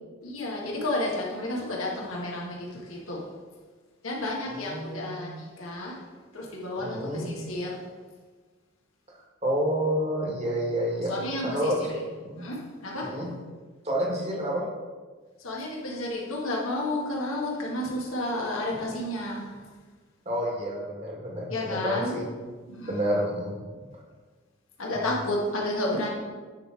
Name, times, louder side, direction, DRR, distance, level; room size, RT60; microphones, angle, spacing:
voice 1, 0.2-3.2 4.0-6.0 6.3-7.8 11.1-11.7 12.3-13.1 15.4-19.6 21.5-22.2 22.7-23.1 23.7-23.8 24.8-26.1, left 1 dB, 85° left, -3 dB, 1.6 m, -31 dB
voice 2, 4.5-5.2 6.8-7.3 9.4-11.1 11.4-12.4 13.0-13.3 13.8-14.6 20.2-22.2 22.9-23.5 24.9-25.1, equal, 30° right, -2 dB, 1.5 m, -29 dB
9.7 x 3.4 x 4.6 m, 1.4 s
head